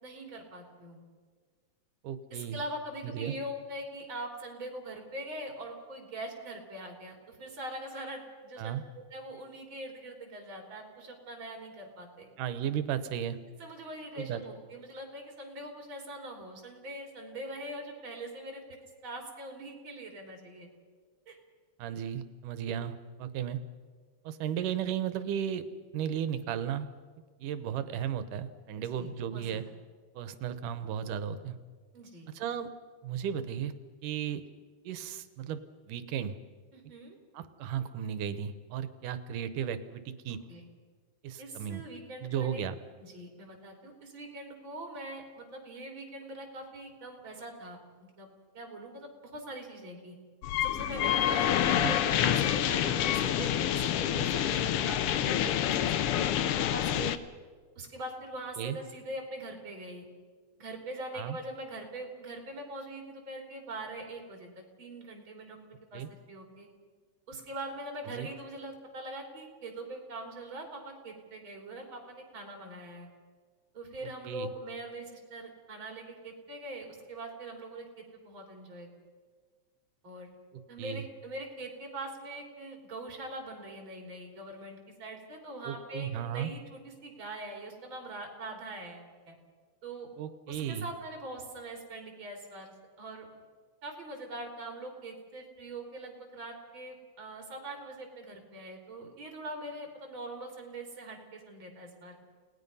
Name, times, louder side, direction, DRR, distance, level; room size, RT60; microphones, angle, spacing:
voice 1, 0.0-1.0 2.3-8.8 9.1-12.3 13.6-18.6 19.0-20.7 21.3-21.4 28.8-29.6 31.9-32.3 36.7-37.2 40.5-40.6 41.4-42.6 43.0-47.8 48.2-48.3 48.5-50.2 50.6-57.2 57.8-60.1 60.6-65.6 65.9-66.0 66.3-66.7 67.3-73.1 73.7-78.9 80.0-80.3 80.7-89.4 89.8-90.1 90.5-93.3 93.8-102.2, right 1 dB, 40° right, 2 dB, 4.1 m, -42 dB
voice 2, 2.0-2.6 3.0-3.4 8.6-8.8 12.4-13.4 14.2-14.4 21.8-23.6 24.2-25.7 25.9-26.9 27.4-29.6 30.2-31.5 32.3-32.7 33.0-33.7 34.0-34.4 34.8-35.6 35.9-36.4 37.3-40.4 41.2-41.8 42.2-42.8 51.7-52.0 58.6-58.8 61.1-61.4 65.9-66.1 68.1-68.3 74.3-74.5 80.8-81.0 85.6-86.5 90.2-90.9, right 9 dB, 85° right, 12 dB, 2.6 m, -35 dB
sound 1, 50.4-57.2, left 10 dB, 85° left, 1.3 m, -27 dB
29.5 x 19.0 x 5.5 m, 1.5 s
omnidirectional pair, 3.6 m